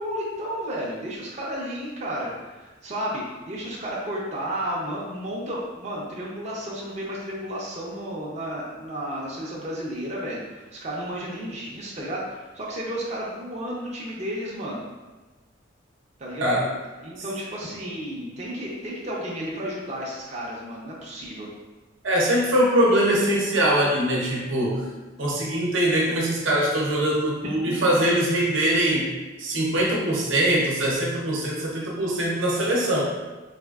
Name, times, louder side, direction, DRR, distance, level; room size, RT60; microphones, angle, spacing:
voice 1, 0.0-2.3 2.5-14.8 16.2-16.6 17.0-21.5, equal, 35° right, -5 dB, 0.5 m, -32 dB
voice 2, 22.0-24.9 25.2-29.1 29.4-33.0, right 1 dB, 80° right, -3 dB, 0.8 m, -22 dB
4.2 x 2.5 x 2.3 m, 1.2 s
head